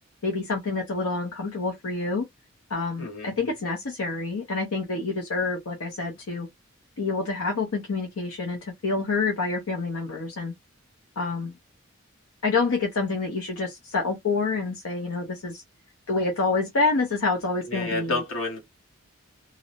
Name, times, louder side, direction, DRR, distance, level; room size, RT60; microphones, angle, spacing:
voice 1, 0.2-2.2 2.7-6.5 7.0-10.5 11.2-11.5 12.4-15.6 16.1-18.2, left 3 dB, 85° left, 0.7 m, -27 dB
voice 2, 3.0-3.3 17.7-18.6, left 2 dB, 70° left, 1.2 m, -29 dB
2.5 x 2.0 x 2.8 m
head